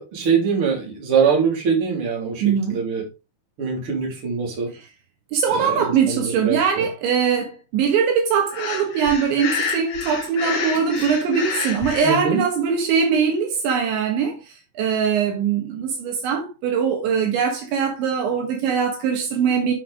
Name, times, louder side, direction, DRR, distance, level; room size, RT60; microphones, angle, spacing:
voice 1, 0.0-3.0 3.6-4.7 5.5-6.9 11.0-11.1 12.0-12.4, right 6 dB, 30° right, 3.8 m, -23 dB
voice 2, 2.4-2.8 5.3-14.4 14.8-19.7, right 6 dB, 70° right, 3.7 m, -21 dB
Breathing, 8.5-12.2, left 5 dB, 75° left, 1.5 m, -28 dB
10.0 x 7.2 x 3.6 m
omnidirectional pair, 5.6 m